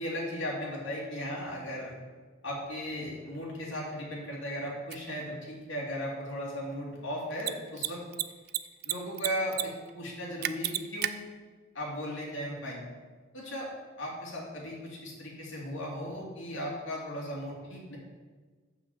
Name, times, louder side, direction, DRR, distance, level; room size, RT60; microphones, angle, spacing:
voice 1, 0.0-1.9 2.4-8.0 8.8-11.2 11.7-12.8 13.3-13.7 14.0-18.0, equal, 65° left, -4 dB, 3.0 m, -36 dB
Mechanisms, 4.9-5.0 7.3-7.5 7.8-7.9 8.1-8.9 9.2-9.6 9.9-10.0 10.4-11.1, right 13 dB, 50° right, 0.4 m, -30 dB
7.0 x 6.1 x 7.4 m, 1.4 s
head